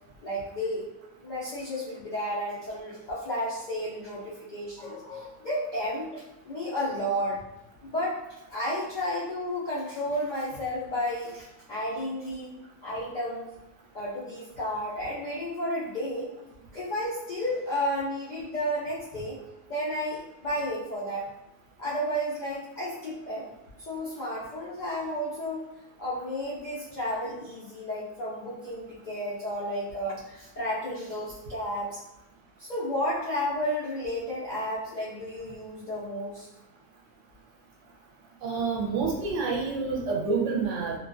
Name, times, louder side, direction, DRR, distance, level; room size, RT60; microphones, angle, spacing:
voice 1, 0.2-0.9 1.2-7.4 7.8-12.5 12.8-13.5 13.9-16.3 16.7-19.4 19.7-21.3 21.8-23.5 23.9-25.6 26.0-32.0 32.6-36.5, equal, 55° left, -8 dB, 0.5 m, -32 dB
voice 2, 38.4-41.0, right 4 dB, 70° right, -1 dB, 0.9 m, -28 dB
2.4 x 2.3 x 2.4 m, 0.94 s
omnidirectional pair, 1.3 m